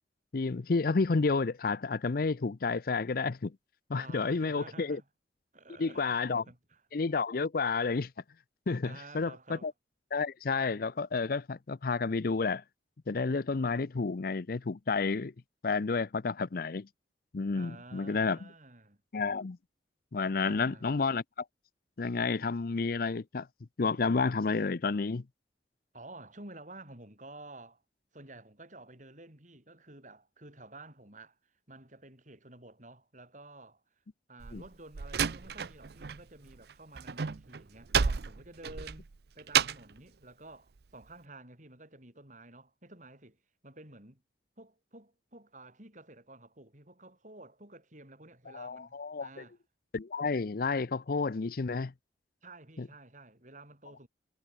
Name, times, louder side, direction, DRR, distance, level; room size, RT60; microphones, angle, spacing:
voice 1, 0.3-3.6 3.9-5.0 5.8-6.4 6.9-8.1 8.7-9.7 10.1-12.6 13.1-15.3 15.6-16.9 17.3-18.4 19.1-19.6 20.1-21.2 22.0-23.5 23.8-25.2 34.5-34.6 48.5-49.4 49.9-51.9 52.8-52.9, left 4 dB, 55° left, 0.5 m, -30 dB
voice 2, 3.9-5.0 5.5-6.2 6.5-6.8 8.8-9.7 17.5-19.0 20.4-20.9 25.9-27.8 28.1-33.8 34.3-39.1 39.3-44.2 44.6-49.6 52.4-54.1, right 2 dB, 45° right, 7.7 m, -51 dB
Slam, 34.4-36.2 36.5-40.0, right 7 dB, 60° right, 0.6 m, -31 dB
head